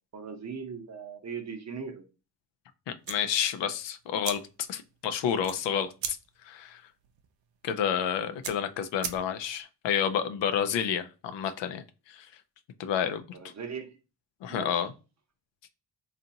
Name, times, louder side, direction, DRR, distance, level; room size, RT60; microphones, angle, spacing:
voice 1, 0.1-2.0 7.9-8.1 13.3-14.0 14.5-14.8, right 6 dB, 35° right, 0.8 m, -39 dB
voice 2, 2.9-4.4 4.7-6.2 6.4-6.8 7.6-12.3 12.8-13.2 14.4-14.9, left 8 dB, 70° left, 0.5 m, -30 dB
sound 1, 3.0-9.6, right 8 dB, 70° right, 0.6 m, -42 dB
2.7 x 2.5 x 2.6 m
supercardioid pair, 45°, 46 cm